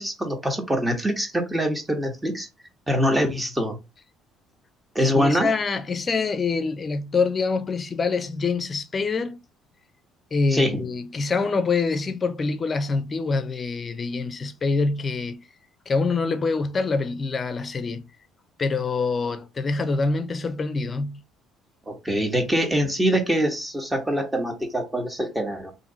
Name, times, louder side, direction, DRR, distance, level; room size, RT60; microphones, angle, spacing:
voice 1, 0.0-2.5 2.9-3.8 4.9-5.5 10.5-10.8 21.9-25.7, equal, 10° right, 1.1 m, -24 dB
voice 2, 5.0-9.4 10.3-15.4 15.9-18.0 18.6-21.2, left 4 dB, 30° left, 0.6 m, -25 dB
2.9 x 2.7 x 3.8 m
cardioid pair, 95°, 0 cm